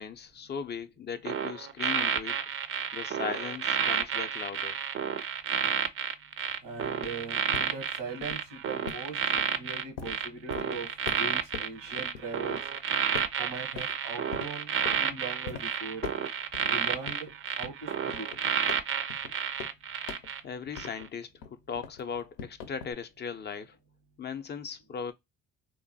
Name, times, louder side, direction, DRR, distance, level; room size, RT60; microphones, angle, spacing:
voice 1, 0.0-2.4 2.9-4.8 20.4-23.8 24.2-25.1, left 6 dB, 30° left, 0.5 m, -38 dB
sound 1, 1.2-20.4 20.7-21.0, right 8 dB, 35° right, 0.4 m, -31 dB
sound 2, 6.4-12.8 13.1-14.0 14.3-15.0 15.5-15.6 16.0-16.7 17.1-21.2 21.4-22.9, left 7 dB, 80° left, 0.6 m, -42 dB
voice 2, 6.6-10.9 11.2-12.6 13.4-16.0 16.7-17.3 17.6-18.3, right 4 dB, 90° right, 1.1 m, -40 dB
3.0 x 2.1 x 2.6 m
hypercardioid pair, 60°, 36 cm